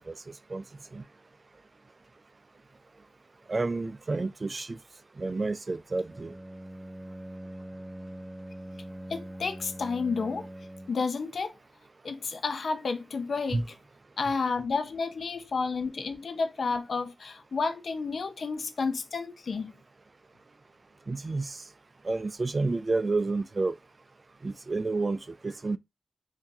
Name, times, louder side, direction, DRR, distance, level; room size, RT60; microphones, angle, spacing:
voice 1, 3.5-4.8 5.2-6.3 13.5-13.6 21.1-21.6 22.0-23.7 24.4-25.8, right 3 dB, 50° right, 0.3 m, -30 dB
Bowed string instrument, 6.1-11.2, right 1 dB, 25° right, 0.8 m, -43 dB
voice 2, 9.1-10.5 10.9-11.5 12.0-13.7 14.2-19.7, left 4 dB, 75° left, 0.5 m, -31 dB
3.7 x 2.7 x 2.7 m
cardioid pair, 45°, 0 cm